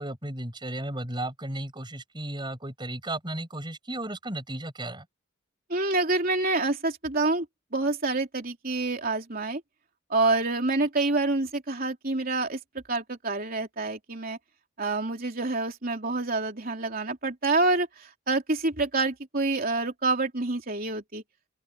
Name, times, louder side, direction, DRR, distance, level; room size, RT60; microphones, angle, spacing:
voice 1, 0.0-5.1, right 1 dB, 20° right, 7.1 m, -34 dB
voice 2, 5.7-7.4 7.7-9.6 10.1-12.6 12.9-14.4 14.8-21.2, right 2 dB, 45° right, 3.4 m, -27 dB
open air
head